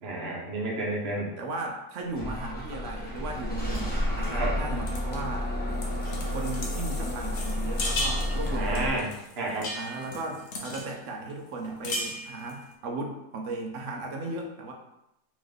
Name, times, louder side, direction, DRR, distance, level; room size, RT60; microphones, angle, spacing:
voice 1, 0.0-1.3 4.3-4.5 8.5-9.1 9.4-9.7, right 2 dB, 45° right, -3 dB, 1.0 m, -31 dB
voice 2, 1.4-5.5 6.3-9.0 9.7-14.7, right 2 dB, 65° right, 2 dB, 0.8 m, -36 dB
Bus / Engine starting, 2.1-8.9, left 1 dB, 10° left, 0.4 m, -31 dB
sound 1, 4.9-5.2 5.7-10.9 11.3-11.4 11.6-12.6, left 1 dB, 55° left, 0.8 m, -36 dB
3.7 x 3.1 x 3.3 m, 0.85 s
omnidirectional pair, 1.7 m